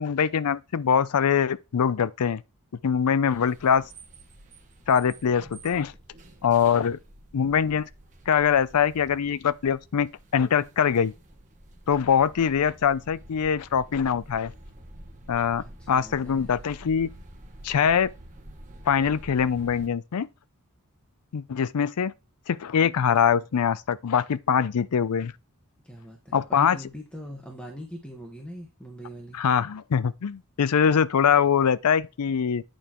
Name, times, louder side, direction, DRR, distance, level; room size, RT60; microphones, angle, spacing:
voice 1, 0.0-2.4 2.8-3.8 4.9-5.9 6.4-7.0 7.3-7.9 8.3-11.1 11.9-14.5 15.3-17.1 17.6-18.1 18.9-20.3 21.3-22.1 22.5-25.3 26.3-26.8 29.3-32.6, left 7 dB, 90° left, 0.5 m, -23 dB
sound 1, 3.3-19.9, right 1 dB, 35° right, 1.3 m, -48 dB
voice 2, 15.6-16.6 25.8-29.4, equal, 5° left, 1.3 m, -42 dB
8.8 x 6.9 x 3.0 m
head